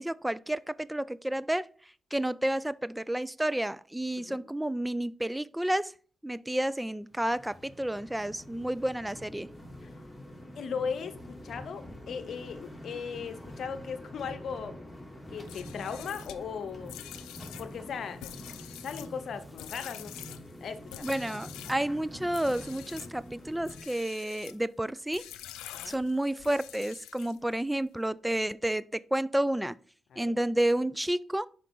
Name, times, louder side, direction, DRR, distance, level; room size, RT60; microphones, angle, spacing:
voice 1, 0.0-1.7 2.1-5.9 6.2-9.5 21.0-25.2 25.9-29.8 30.2-31.5, right 1 dB, 10° right, 0.3 m, -30 dB
sound 1, 7.1-23.8, left 1 dB, 5° left, 2.9 m, -46 dB
voice 2, 10.6-14.8 15.3-17.0 17.6-18.2 18.7-20.2 20.6-21.1 25.7-26.0 30.1-30.4, left 6 dB, 70° left, 0.7 m, -38 dB
sound 2, 15.4-21.8 22.3-23.2 23.6-24.6 25.1-27.5, left 12 dB, 85° left, 0.3 m, -46 dB
5.8 x 5.0 x 5.2 m
hypercardioid pair, 40°, 0 cm